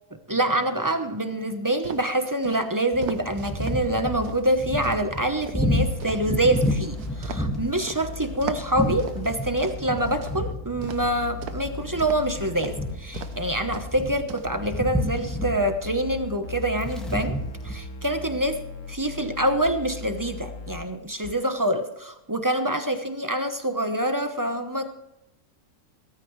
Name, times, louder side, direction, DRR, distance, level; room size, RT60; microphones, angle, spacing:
voice 1, 0.3-17.4 17.6-18.6 18.9-24.9, right 1 dB, 15° right, 7 dB, 0.7 m, -26 dB
sound 1, 1.8-3.8 4.2-8.0 8.4-10.4 10.8-11.7 12.0-12.3 12.6-12.7 13.1-13.5 13.7-14.5, right 7 dB, 85° right, 1.4 m, -38 dB
sound 2, 2.9-17.8, left 1 dB, ahead, 1.8 m, -31 dB
sound 3, 5.6-7.4 8.0-10.5 10.8-13.9 14.4-20.8 21.2-21.3, left 5 dB, 60° left, 1.3 m, -38 dB
17.0 x 14.5 x 3.2 m, 0.90 s
omnidirectional pair, 1.6 m